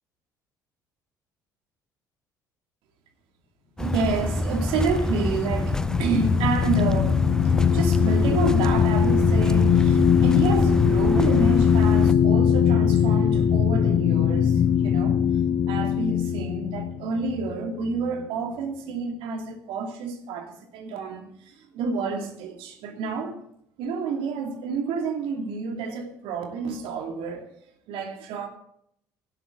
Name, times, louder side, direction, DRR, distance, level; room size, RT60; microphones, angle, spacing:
sound 1, 3.8-12.1, left 1 dB, 5° left, 0.7 m, -27 dB
voice 1, 3.8-15.2 15.7-23.4 23.8-27.4 27.9-28.5, right 4 dB, 60° right, 2.4 m, -29 dB
sound 2, 4.7-18.2, left 8 dB, 45° left, 0.8 m, -21 dB
16.5 x 11.5 x 3.8 m
figure-of-eight pair, 55°, 10 cm